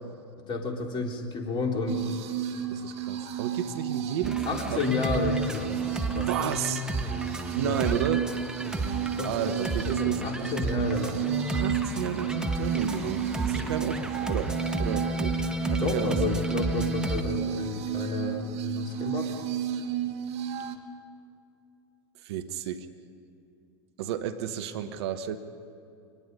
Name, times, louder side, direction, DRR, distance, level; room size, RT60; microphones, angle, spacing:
voice 1, 0.5-2.0 4.4-5.8 6.1-6.3 7.6-7.8 9.2-9.6 9.8-11.2 15.8-19.3, left 4 dB, 35° left, 1 dB, 3.5 m, -31 dB
Bark / Motor vehicle (road) / Siren, 1.5-17.8, left 4 dB, 50° left, 5.8 m, -52 dB
sound 1, 1.9-20.8, right 9 dB, 45° right, 1.5 m, -32 dB
voice 2, 2.7-4.9 6.2-6.9 7.6-8.3 9.2-10.5 11.5-15.4 15.7-16.2 22.2-22.9 24.0-25.4, right 9 dB, 65° right, 9 dB, 1.2 m, -32 dB
sound 2, 4.2-17.2, right 1 dB, 5° right, 1.5 m, -32 dB
23.5 x 20.0 x 5.5 m, 2.6 s
hypercardioid pair, 85°, 15 cm